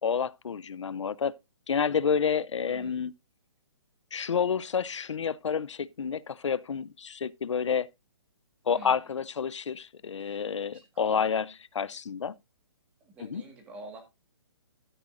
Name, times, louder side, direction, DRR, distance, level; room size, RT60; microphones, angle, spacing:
voice 1, 0.0-1.3 1.7-3.1 4.1-7.9 8.7-11.4 11.7-12.3 13.2-13.4, left 6 dB, 85° left, 0.7 m, -29 dB
voice 2, 2.7-3.0 8.7-9.2 10.2-10.5 10.7-11.2 13.0-14.0, right 2 dB, 10° right, 1.6 m, -48 dB
13.0 x 8.9 x 2.5 m
hypercardioid pair, 180°, 15 cm